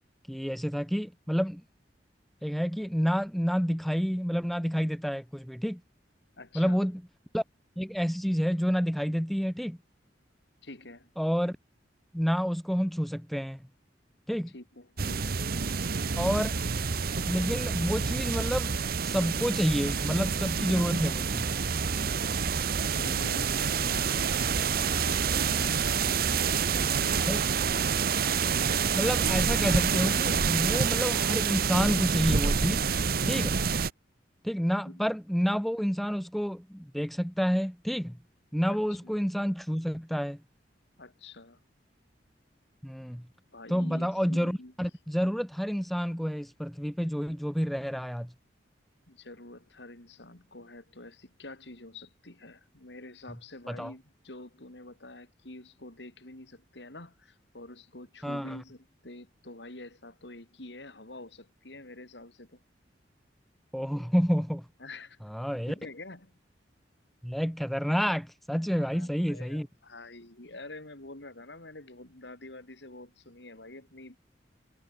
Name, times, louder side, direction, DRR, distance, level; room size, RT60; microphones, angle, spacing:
voice 1, 0.3-1.6 2.4-5.8 6.5-7.0 7.3-7.4 7.8-9.8 11.2-11.6 12.1-13.6 14.3-14.5 16.2-16.6 17.2-18.7 19.0-21.5 25.4-25.5 27.3-27.4 28.9-32.9 33.2-33.5 34.4-38.2 38.5-40.4 42.8-43.2 43.7-48.3 53.7-53.9 58.2-58.6 63.7-64.6 65.3-65.7 67.2-69.7, equal, ahead, 1.4 m, -29 dB
voice 2, 6.4-6.9 10.6-11.1 14.5-15.5 22.8-27.8 34.8-35.0 38.7-39.1 41.0-41.6 43.5-44.7 49.1-62.6 64.8-65.2 65.7-66.3 68.7-74.2, left 2 dB, 70° left, 3.4 m, -47 dB
sound 1, 15.0-33.9, right 6 dB, 55° right, 0.9 m, -28 dB
head